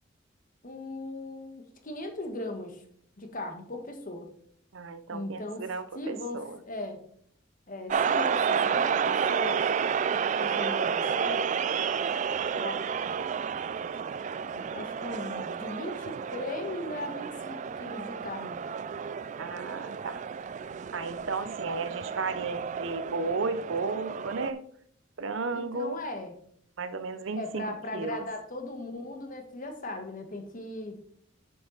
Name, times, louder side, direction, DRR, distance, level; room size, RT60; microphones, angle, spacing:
voice 1, 0.6-2.8 3.2-4.3 5.1-5.7 5.9-7.0 7.7-9.7 10.1-11.5 12.5-12.8 14.5-18.6 25.5-26.3 27.3-31.0, left 1 dB, 45° left, 1.3 m, -38 dB
voice 2, 4.7-6.6 19.4-20.2 20.9-24.6 25.2-26.0 26.8-28.2, right 4 dB, 75° right, 0.6 m, -34 dB
sound 1, 7.9-24.5, right 6 dB, 40° right, 0.3 m, -31 dB
7.1 x 6.8 x 3.9 m
head